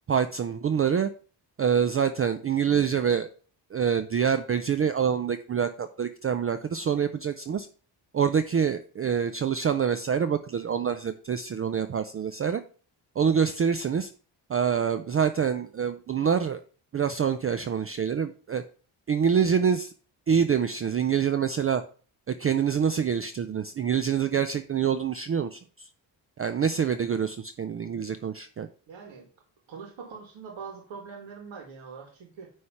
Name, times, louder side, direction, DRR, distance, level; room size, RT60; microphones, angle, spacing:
voice 1, 0.1-1.1 1.6-3.3 3.7-7.7 8.1-12.6 13.2-14.1 14.5-16.6 16.9-18.6 19.1-19.9 20.3-21.8 22.3-25.9 26.4-28.7, right 7 dB, 30° right, 10 dB, 0.4 m, -26 dB
voice 2, 28.9-29.3 29.7-32.5, right 5 dB, 80° right, 1 dB, 2.0 m, -43 dB
9.6 x 3.3 x 5.7 m, 0.39 s
wide cardioid pair, 165°, 46 cm